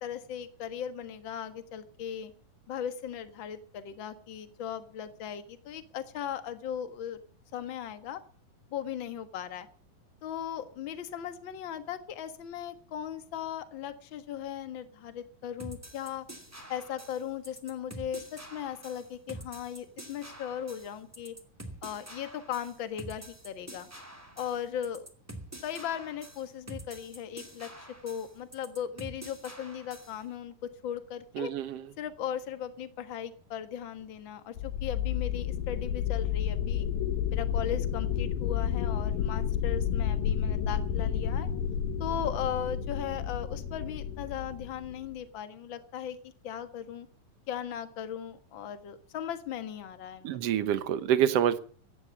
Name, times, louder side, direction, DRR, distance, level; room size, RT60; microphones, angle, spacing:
voice 1, 0.0-2.3 2.7-7.2 7.5-8.2 8.7-9.7 10.2-16.3 16.7-21.3 21.8-23.9 24.4-25.0 25.6-31.5 32.0-36.9 37.3-41.5 42.0-47.1 47.5-50.5, left 9 dB, 45° left, 10 dB, 1.7 m, -38 dB
sound 1, 15.6-30.2, right 1 dB, 5° right, 2.1 m, -46 dB
voice 2, 31.4-31.9 50.2-51.6, right 10 dB, 65° right, 13 dB, 1.6 m, -27 dB
sound 2, 34.6-45.2, left 9 dB, 85° left, 3.0 m, -31 dB
16.5 x 10.5 x 7.1 m, 0.43 s
omnidirectional pair, 4.0 m